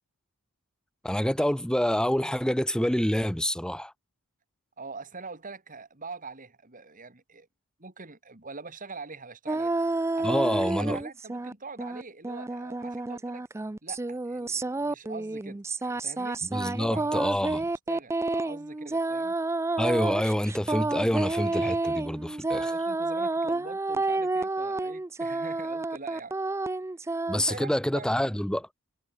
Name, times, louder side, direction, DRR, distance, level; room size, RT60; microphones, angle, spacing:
voice 1, 1.0-3.9 10.2-11.0 16.5-17.6 19.8-22.7 27.3-28.7, equal, 5° left, 0.8 m, -27 dB
voice 2, 4.8-7.5 7.8-9.7 10.1-13.4 13.8-17.3 17.9-19.3 22.6-26.3 27.3-28.3, right 4 dB, 40° right, 2.8 m, -43 dB
sound 1, 9.5-11.5 11.8-27.5, right 2 dB, 10° right, 0.3 m, -30 dB
head